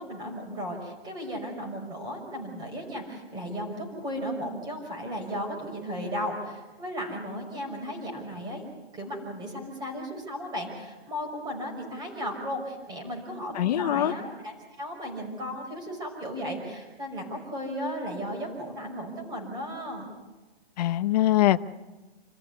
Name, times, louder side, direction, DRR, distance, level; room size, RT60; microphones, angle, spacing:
voice 1, 0.0-8.6 8.9-20.1, equal, 15° right, 2 dB, 5.7 m, -35 dB
voice 2, 13.5-14.1 20.8-21.6, left 14 dB, 40° left, 9 dB, 0.8 m, -23 dB
27.5 x 14.5 x 9.6 m, 1.2 s
hypercardioid pair, 165°, 31 cm